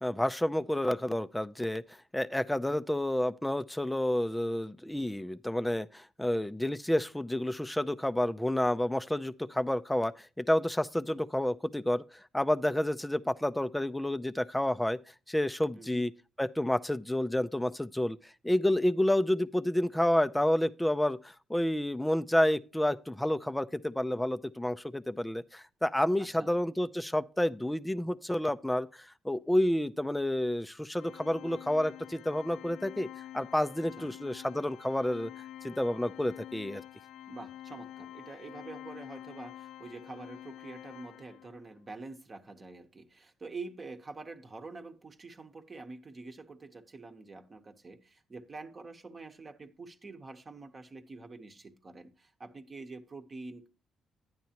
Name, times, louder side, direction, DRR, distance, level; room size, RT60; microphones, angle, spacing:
voice 1, 0.0-1.8 2.1-12.0 12.3-15.0 15.3-16.1 16.4-33.1 33.3-35.3 35.6-36.8, left 1 dB, 5° left, 0.5 m, -29 dB
voice 2, 26.2-26.5 34.0-34.1 37.3-53.7, right 3 dB, 35° right, 1.0 m, -46 dB
Organ, 31.0-41.7, left 13 dB, 80° left, 0.3 m, -48 dB
10.5 x 9.4 x 2.9 m
cardioid pair, 90°, 0 cm